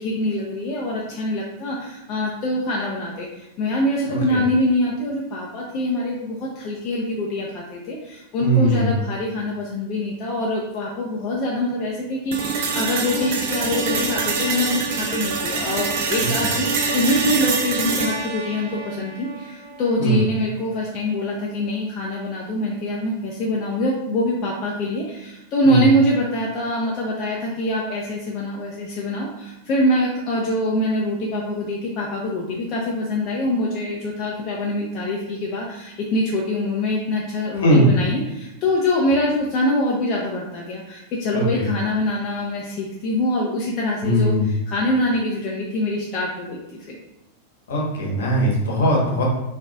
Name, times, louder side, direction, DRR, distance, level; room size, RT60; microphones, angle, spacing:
voice 1, 0.0-47.0, left 1 dB, 35° left, -3 dB, 0.4 m, -24 dB
voice 2, 4.1-4.4 8.4-8.9 16.4-16.5 20.0-20.2 25.7-25.8 37.6-37.9 41.3-41.7 44.0-44.4 47.7-49.2, right 1 dB, 60° left, -2 dB, 0.9 m, -19 dB
sound 1, 12.3-20.3, right 4 dB, 50° right, 0.4 m, -25 dB
3.8 x 2.5 x 2.2 m, 0.93 s
figure-of-eight pair, 90°, 0 cm